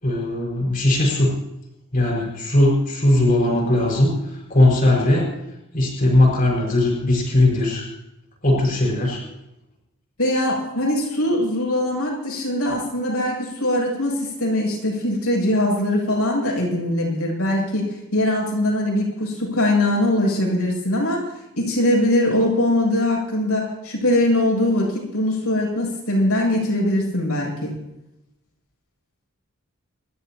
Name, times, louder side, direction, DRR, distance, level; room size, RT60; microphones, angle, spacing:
voice 1, 0.0-1.3 1.9-4.1 4.5-5.3 5.7-7.9 8.4-9.2, left 1 dB, 40° left, -3 dB, 5.8 m, -18 dB
voice 2, 10.2-21.3 21.6-27.8, left 1 dB, 85° left, -4 dB, 7.9 m, -21 dB
29.5 x 13.5 x 3.1 m, 0.90 s
head